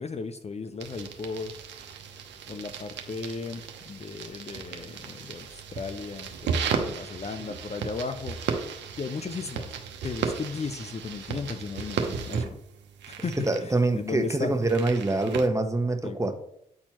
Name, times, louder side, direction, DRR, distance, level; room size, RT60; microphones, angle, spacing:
voice 1, 0.0-1.5 2.5-8.4 9.0-9.7 10.0-12.6 13.1-14.5 16.0-16.2, left 4 dB, 35° left, 9 dB, 0.5 m, -36 dB
sound 1, 0.8-15.5, right 6 dB, 80° right, 0.8 m, -35 dB
voice 2, 13.5-16.3, right 2 dB, 15° right, 6 dB, 1.0 m, -25 dB
8.6 x 4.3 x 2.9 m, 0.74 s
supercardioid pair, 50°, 18 cm